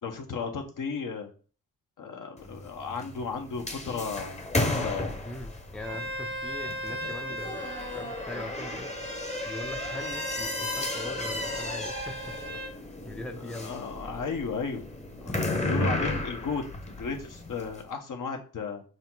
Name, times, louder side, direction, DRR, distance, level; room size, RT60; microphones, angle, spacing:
voice 1, 0.0-1.3 2.0-5.2 13.5-14.8 15.2-16.6 17.0-18.8, left 5 dB, 60° left, 4 dB, 1.4 m, -34 dB
sound 1, 2.4-17.8, left 2 dB, 20° left, 1.0 m, -34 dB
voice 2, 5.2-8.9 9.4-12.4 13.0-13.8 15.3-15.6, left 1 dB, 5° left, 7 dB, 0.6 m, -41 dB
Bowed string instrument, 5.8-12.7, equal, 90° right, 1.7 m, -38 dB
5.7 x 4.3 x 3.9 m, 0.38 s
cardioid pair, 85°, 35 cm